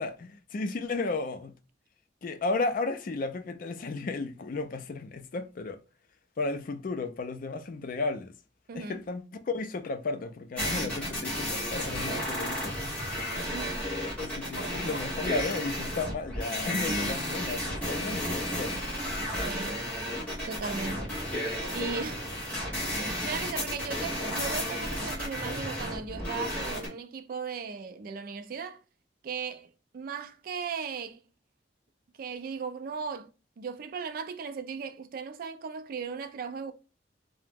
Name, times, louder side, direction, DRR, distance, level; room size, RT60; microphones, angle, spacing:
voice 1, 0.0-1.5 2.2-5.8 6.4-8.3 8.7-12.8 14.2-18.8, left 3 dB, 50° left, 0.4 m, -34 dB
voice 2, 8.7-9.0 13.5-13.9 19.4-19.9 20.5-21.2 21.7-22.3 22.9-28.8 29.2-31.2 32.2-33.3 33.6-36.7, right 5 dB, 55° right, 0.3 m, -37 dB
sound 1, 10.6-26.9, equal, 10° left, 1.2 m, -32 dB
2.8 x 2.0 x 3.4 m
head